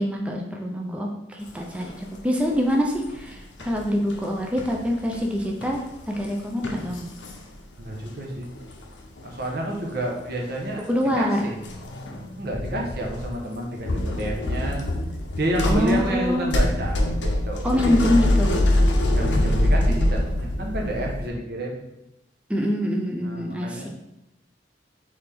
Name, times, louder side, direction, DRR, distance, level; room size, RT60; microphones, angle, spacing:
voice 1, 0.0-5.8 6.1-7.1 10.9-11.4 15.6-16.5 17.6-18.8 22.5-23.9, equal, 5° right, 0 dB, 0.4 m, -25 dB
sound 1, 1.6-2.2 2.5-8.1 8.4-9.5 9.7-10.0 10.3-11.0 11.6-13.3 13.7-21.3, left 1 dB, 80° left, 0.7 m, -25 dB
voice 2, 7.8-8.5 9.2-10.8 11.1-11.6 12.4-14.9 15.4-18.0 19.1-21.8 23.2-23.9, right 1 dB, 55° right, 0 dB, 0.9 m, -30 dB
4.2 x 3.3 x 3.4 m, 0.89 s
head